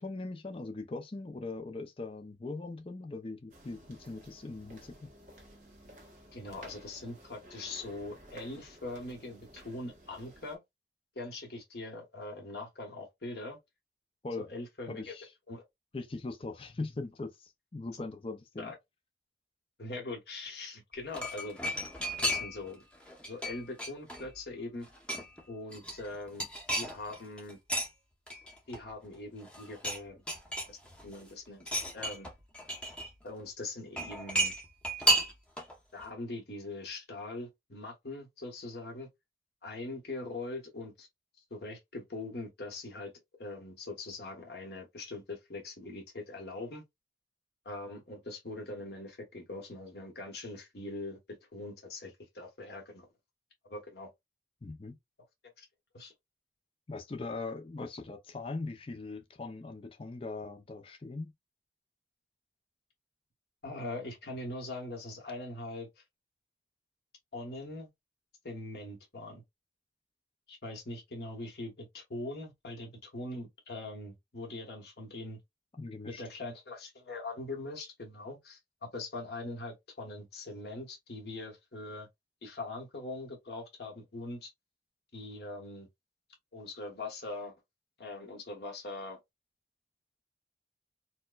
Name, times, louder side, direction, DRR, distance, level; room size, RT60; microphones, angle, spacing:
voice 1, 0.0-5.1 14.2-14.5 14.9-15.3 15.9-18.7 54.6-55.0 56.9-61.3 75.8-76.2, left 3 dB, 30° left, 0.4 m, -40 dB
sound 1, 3.5-10.6, right 1 dB, 45° right, 1.2 m, -54 dB
voice 2, 6.3-10.6 11.1-13.6 14.4-15.1 15.5-15.6 18.6-18.7 19.8-21.6 22.2-22.8 23.3-24.9 25.5-26.5 26.7-27.6 28.7-30.2 30.7-31.6 31.9-32.3 33.2-34.5 35.9-39.1 39.6-41.1 41.5-43.1 43.4-46.8 47.6-51.2 51.5-53.1 53.7-54.1 55.6-55.7 55.9-56.1 63.6-66.0 67.3-67.9 68.4-69.4 70.5-75.4 76.1-78.6 78.9-82.1 82.4-84.5 85.1-85.9 86.5-87.5 88.0-89.2, left 2 dB, 70° left, 1.1 m, -42 dB
sound 2, 20.9-22.7 23.0-24.4 24.7-25.4 25.7-27.9 28.3-29.1 29.4-30.0 30.3-31.1 31.6-33.1 34.0-35.7 36.0-36.1, right 1 dB, 5° left, 0.8 m, -33 dB
4.4 x 2.1 x 2.3 m
head